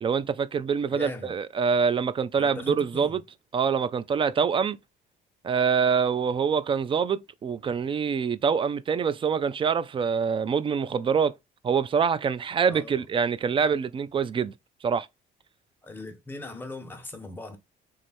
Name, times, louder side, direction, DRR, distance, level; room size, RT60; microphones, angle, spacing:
voice 1, 0.0-3.2 3.5-4.8 5.4-11.4 11.6-14.5 14.8-15.1, right 6 dB, 30° right, 0.4 m, -25 dB
voice 2, 0.9-1.3 2.4-3.2 12.7-13.1 15.8-17.6, left 2 dB, 10° left, 1.3 m, -39 dB
3.5 x 3.2 x 4.3 m
cardioid pair, 110°, 17 cm